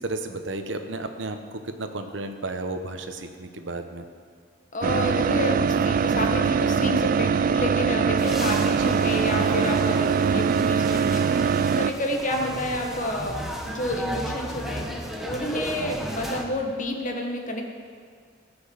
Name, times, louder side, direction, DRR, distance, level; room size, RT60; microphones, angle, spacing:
voice 1, 0.0-4.0 8.8-9.0 15.7-16.0, right 2 dB, 75° right, 7 dB, 1.0 m, -33 dB
voice 2, 4.7-14.9 15.2-17.6, left 1 dB, 45° left, 2 dB, 1.5 m, -30 dB
sound 1, 4.8-11.9, right 6 dB, 45° right, 0.4 m, -22 dB
sound 2, 8.2-16.4, equal, ahead, 1.2 m, -35 dB
18.5 x 6.3 x 7.1 m, 2.1 s
head